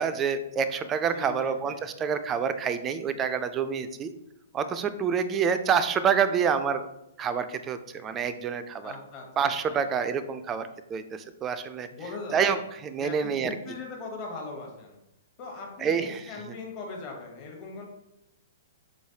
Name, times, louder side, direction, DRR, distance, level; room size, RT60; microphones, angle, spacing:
voice 1, 0.0-4.1 4.5-6.8 7.2-8.9 9.4-11.9 12.3-13.5 15.8-16.2, right 7 dB, 25° right, 10 dB, 0.3 m, -27 dB
voice 2, 1.1-1.8 8.8-9.8 11.9-12.6 13.0-15.0 15.4-17.8, left 3 dB, 35° left, 0 dB, 1.0 m, -40 dB
4.4 x 3.2 x 2.7 m, 0.85 s
figure-of-eight pair, 115°, 0 cm